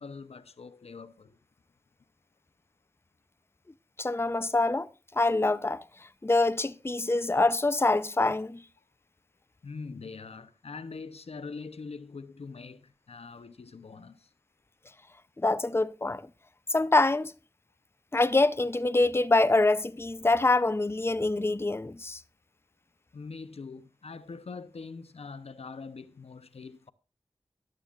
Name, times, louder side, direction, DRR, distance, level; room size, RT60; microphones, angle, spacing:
voice 1, 0.0-1.4 9.6-14.3 23.1-26.9, left 4 dB, 90° left, 0.7 m, -43 dB
voice 2, 4.0-8.6 15.4-16.2 16.7-17.3 18.1-22.2, left 2 dB, 25° left, 0.5 m, -25 dB
14.0 x 12.0 x 2.4 m
wide cardioid pair, 45°, 10 cm